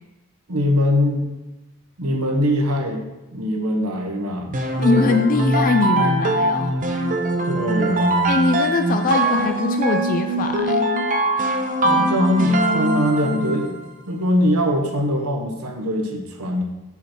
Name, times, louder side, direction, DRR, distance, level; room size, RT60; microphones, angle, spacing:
voice 1, 0.5-1.3 2.0-3.0 3.3-4.5 7.5-8.3 11.8-13.7 14.1-16.6, left 1 dB, 75° right, 3 dB, 1.1 m, -22 dB
sound 1, 4.5-13.7, right 1 dB, 35° right, 0.7 m, -21 dB
voice 2, 4.8-6.8 8.3-10.9, left 3 dB, 40° left, 6 dB, 0.4 m, -21 dB
6.1 x 5.7 x 4.3 m, 1.1 s
head